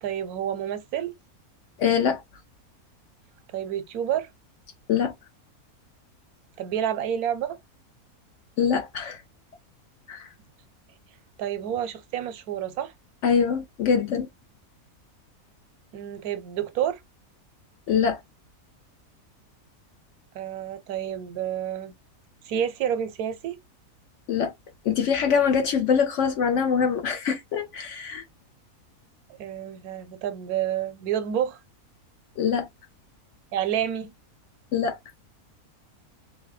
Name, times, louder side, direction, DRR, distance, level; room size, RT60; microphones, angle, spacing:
voice 1, 0.0-1.1 3.5-4.3 6.6-7.6 11.4-12.9 15.9-17.0 20.3-21.9 22.4-23.6 29.3-31.6 33.5-34.1, right 10 dB, 80° right, 1.1 m, -29 dB
voice 2, 1.8-2.2 4.9-5.1 8.6-9.2 10.1-10.3 13.2-14.3 17.9-18.2 24.3-24.5 24.8-28.2 32.4-32.7 34.7-35.0, left 7 dB, 65° left, 0.8 m, -23 dB
2.7 x 2.6 x 3.1 m
omnidirectional pair, 1.6 m